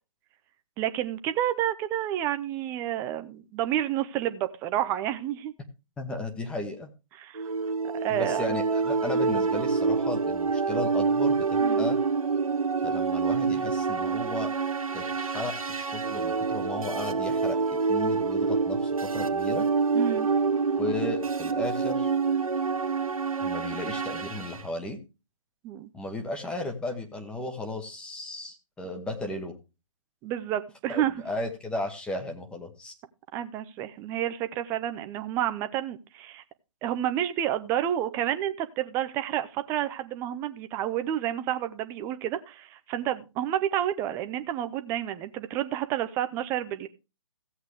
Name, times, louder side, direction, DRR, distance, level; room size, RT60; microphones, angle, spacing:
voice 1, 0.8-5.5 7.2-7.4 8.0-8.4 11.6-11.9 19.9-20.3 25.6-25.9 30.2-31.1 33.3-36.4 36.8-46.9, right 11 dB, 15° right, 10 dB, 0.6 m, -30 dB
voice 2, 6.0-6.9 8.1-12.0 12.8-14.5 14.9-17.6 17.9-19.7 20.8-22.1 23.4-25.0 25.9-29.5 30.9-32.9, left 2 dB, 5° left, 4 dB, 1.2 m, -35 dB
sound 1, 7.4-24.6, right 5 dB, 85° right, 1.0 m, -27 dB
15.5 x 8.1 x 3.4 m, 0.30 s
figure-of-eight pair, 145°, 17 cm